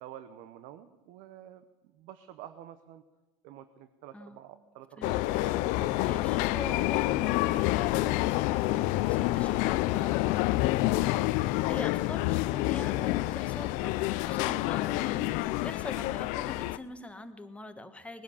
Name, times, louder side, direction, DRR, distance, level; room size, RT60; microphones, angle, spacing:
voice 1, 0.0-3.0 3.4-6.2, right 11 dB, 60° right, 11 dB, 0.8 m, -49 dB
sound 1, 5.0-16.8, left 18 dB, 60° left, 0.6 m, -28 dB
voice 2, 5.0-5.5 6.0-18.2, left 2 dB, 10° left, 8 dB, 1.4 m, -44 dB
19.5 x 10.5 x 7.1 m, 1.2 s
supercardioid pair, 100°, 15 cm